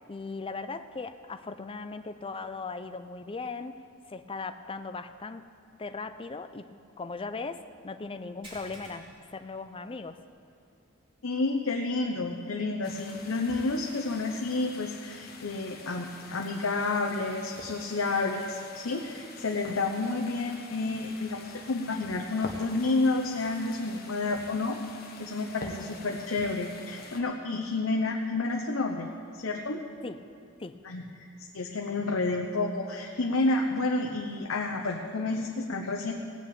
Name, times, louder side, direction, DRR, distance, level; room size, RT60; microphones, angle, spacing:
voice 1, 0.1-3.8 4.1-5.4 5.7-10.2 30.0-30.2 30.6-30.8, left 4 dB, 25° left, 10 dB, 0.5 m, -38 dB
sound 1, 8.4-10.3 10.7-10.9 11.3-11.4 13.1-13.2, equal, 25° right, 3.4 m, -50 dB
voice 2, 11.2-24.8 25.2-29.1 29.4-29.8 30.8-31.3 31.5-36.1, left 3 dB, 85° left, 1 dB, 0.9 m, -30 dB
sound 2, 12.8-27.2, left 3 dB, 50° left, 1.4 m, -46 dB
17.5 x 6.1 x 8.7 m, 2.5 s
head